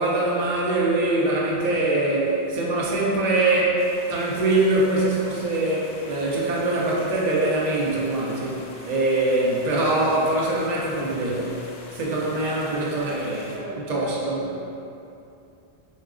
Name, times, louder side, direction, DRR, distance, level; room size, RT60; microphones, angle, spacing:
voice 1, 0.0-13.4 13.8-14.4, right 2 dB, 50° right, -4 dB, 0.6 m, -23 dB
sound 1, 3.8-13.6, left 2 dB, 80° left, 0.8 m, -45 dB
voice 2, 12.4-14.6, right 1 dB, 85° right, -5 dB, 1.0 m, -39 dB
3.8 x 2.3 x 3.7 m, 2.7 s
omnidirectional pair, 1.0 m